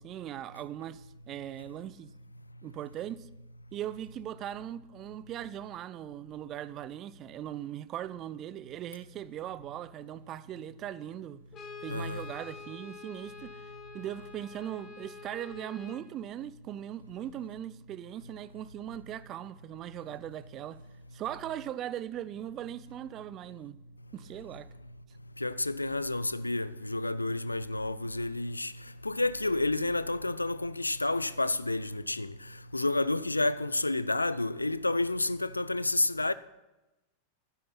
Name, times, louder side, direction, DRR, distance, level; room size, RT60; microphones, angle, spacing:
voice 1, 0.0-2.1 2.6-3.3 3.7-11.4 11.8-13.6 13.9-20.8 21.1-23.8 24.1-24.7, right 11 dB, 35° right, 0.5 m, -39 dB
Brass instrument, 11.5-16.1, left 4 dB, 30° left, 1.7 m, -46 dB
voice 2, 11.9-12.3 25.4-28.7 29.0-32.3 32.7-36.3, left 2 dB, 85° left, 0.4 m, -30 dB
12.5 x 10.5 x 5.9 m
figure-of-eight pair, 90°, 0 cm